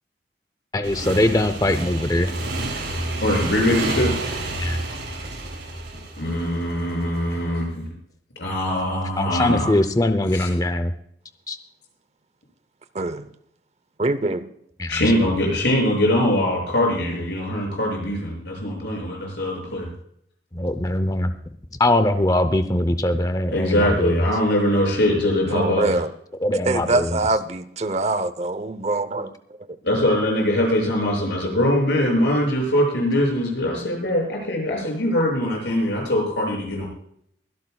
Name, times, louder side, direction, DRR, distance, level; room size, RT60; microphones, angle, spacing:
voice 1, 0.7-2.3 4.6-4.8 9.1-10.9 11.5-11.6 14.8-15.0 20.5-21.3 21.8-24.3 26.4-27.2 29.2-29.3, left 1 dB, 20° left, 10 dB, 0.6 m, -21 dB
Motorcycle / Engine, 0.8-7.2, right 2 dB, 85° right, 6.8 m, -29 dB
voice 2, 3.2-4.2 6.2-7.9 8.4-9.7 10.3-10.5 14.9-19.9 23.5-26.0 29.8-36.9, left 1 dB, 85° left, 0 dB, 6.9 m, -22 dB
voice 3, 12.9-13.3 14.0-14.5 25.5-26.1 26.7-29.3, right 2 dB, 40° right, 13 dB, 0.8 m, -24 dB
23.0 x 12.0 x 2.3 m, 0.69 s
head